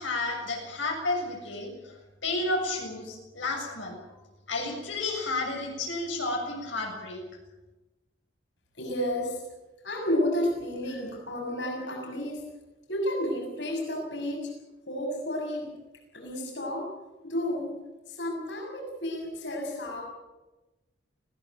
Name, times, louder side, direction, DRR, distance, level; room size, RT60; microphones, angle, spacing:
voice 1, 0.0-4.2 4.5-7.2, left 2 dB, 90° left, 0 dB, 7.1 m, -32 dB
voice 2, 8.7-9.4 9.8-12.4 12.9-14.5 14.8-15.7 16.1-16.9 17.2-17.7 18.1-20.0, left 1 dB, 70° left, 0 dB, 6.7 m, -31 dB
21.0 x 17.5 x 9.0 m, 1.1 s
head